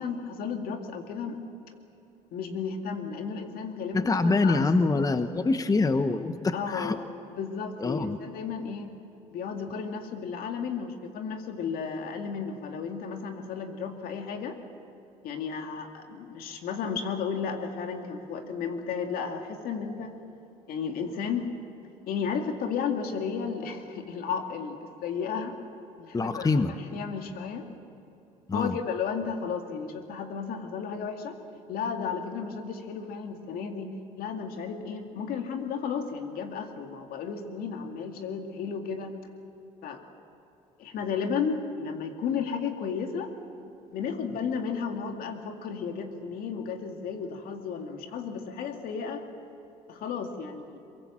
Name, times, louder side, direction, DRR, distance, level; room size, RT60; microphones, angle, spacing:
voice 1, 0.0-1.4 2.3-4.8 6.5-7.0 7.3-8.9 9.3-14.6 15.2-20.1 20.7-21.5 22.1-25.6 26.0-27.6 28.5-31.4 31.7-39.1 39.8-40.0 40.8-43.3 43.9-49.2 49.9-50.8, left 6 dB, 70° left, 4 dB, 2.4 m, -33 dB
voice 2, 3.9-7.0 7.8-8.2 26.1-26.7 28.5-28.8, left 3 dB, 25° left, 10 dB, 1.0 m, -25 dB
23.0 x 22.5 x 7.4 m, 2.8 s
supercardioid pair, 75°, 16 cm